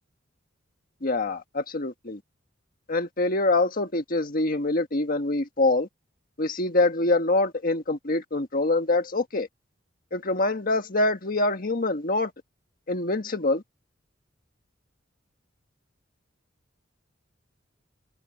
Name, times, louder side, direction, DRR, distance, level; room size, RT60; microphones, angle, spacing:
voice 1, 1.0-2.2 2.9-5.9 6.4-9.5 10.1-12.3 12.9-13.6, left 2 dB, 45° left, 1.5 m, -25 dB
head